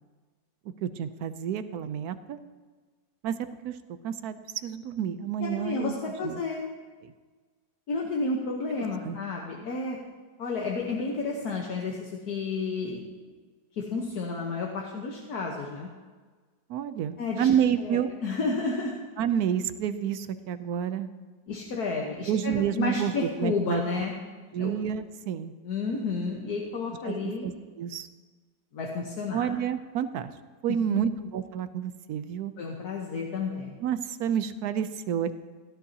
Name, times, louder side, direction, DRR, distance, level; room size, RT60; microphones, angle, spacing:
voice 1, 0.8-2.4 3.2-3.4 3.6-3.8 4.0-5.9 6.2-6.4 7.0-7.1 9.0-9.2 16.7-18.1 19.2-21.1 22.3-24.0 24.5-25.5 27.0-28.1 29.3-30.3 30.6-32.5 33.8-35.4, right 9 dB, 75° right, 11 dB, 1.1 m, -29 dB
voice 2, 5.4-6.6 7.9-10.0 10.4-13.0 13.8-15.9 17.2-17.5 17.8-18.9 21.5-24.1 24.6-24.8 25.6-27.5 28.7-29.5 30.9-31.1 32.6-33.8, left 4 dB, 75° left, -1 dB, 1.7 m, -31 dB
17.0 x 12.5 x 2.8 m, 1.4 s
omnidirectional pair, 1.7 m